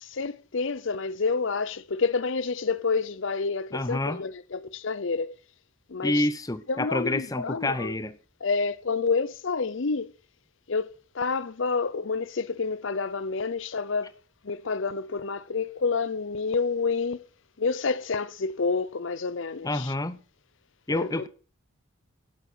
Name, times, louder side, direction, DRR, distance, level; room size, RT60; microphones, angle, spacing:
voice 1, 0.0-5.3 5.9-6.2 6.7-7.9 8.4-10.1 10.7-14.1 14.4-17.3 17.6-19.9 20.9-21.1, left 4 dB, 60° left, 0.7 m, -28 dB
voice 2, 3.7-4.2 6.0-8.2 19.6-20.2 20.9-21.3, left 2 dB, 15° left, 0.8 m, -28 dB
13.0 x 8.9 x 6.2 m
head